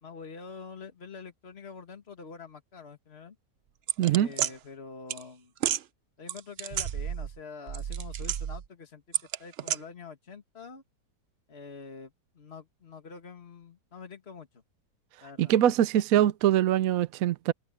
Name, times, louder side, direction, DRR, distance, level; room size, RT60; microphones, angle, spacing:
voice 1, 0.0-3.4 4.1-5.5 6.2-9.0 9.4-10.8 11.5-14.6 15.2-15.5 15.9-16.0, left 5 dB, 35° left, 2.2 m, -46 dB
sound 1, 3.9-4.5 5.1-5.2 5.6-5.8 6.3-7.4 7.7-8.6 9.1-9.8, right 10 dB, 85° right, 0.5 m, -31 dB
voice 2, 4.0-4.3 15.4-17.5, right 11 dB, 65° right, 1.0 m, -23 dB
omnidirectional pair, 1.8 m